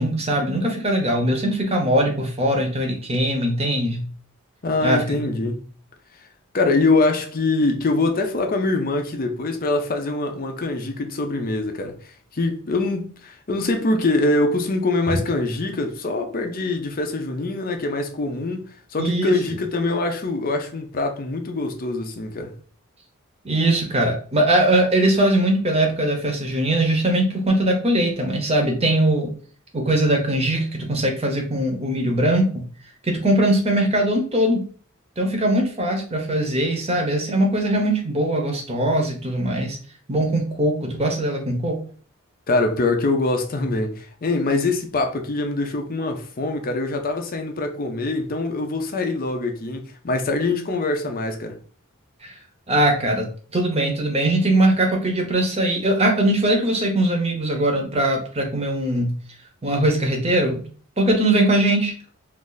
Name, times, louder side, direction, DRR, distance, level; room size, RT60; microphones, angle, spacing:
voice 1, 0.0-4.1 4.8-5.2 15.1-15.2 19.0-19.4 23.4-29.3 29.7-32.6 33.0-34.6 35.2-39.8 40.1-41.8 52.2-52.3 52.7-59.1 59.6-60.6 61.0-61.9, right 1 dB, 30° right, 0.8 m, -21 dB
voice 2, 4.6-5.6 6.5-11.9 12.3-18.6 18.9-22.5 42.5-51.6, left 2 dB, 45° left, 0.6 m, -23 dB
2.6 x 2.6 x 3.8 m
head